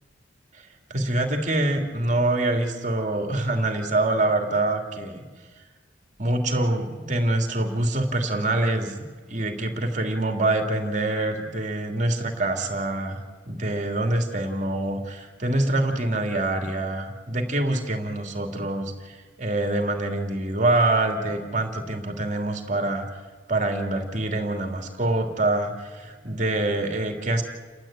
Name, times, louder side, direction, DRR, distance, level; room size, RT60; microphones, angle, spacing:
voice 1, 0.5-5.2 6.2-23.1 23.5-27.4, right 2 dB, 40° right, 4 dB, 2.9 m, -25 dB
29.5 x 13.0 x 9.0 m, 1.4 s
head